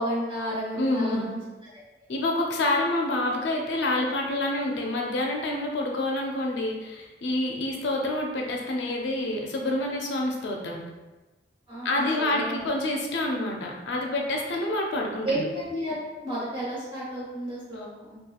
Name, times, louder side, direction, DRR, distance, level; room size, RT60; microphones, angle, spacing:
voice 1, 0.0-1.4 11.7-12.7 15.2-18.2, equal, 30° right, -8 dB, 1.1 m, -32 dB
voice 2, 0.7-1.3 2.1-10.8 11.8-15.5, left 1 dB, 70° left, 0 dB, 0.4 m, -27 dB
2.8 x 2.4 x 2.3 m, 1.1 s
head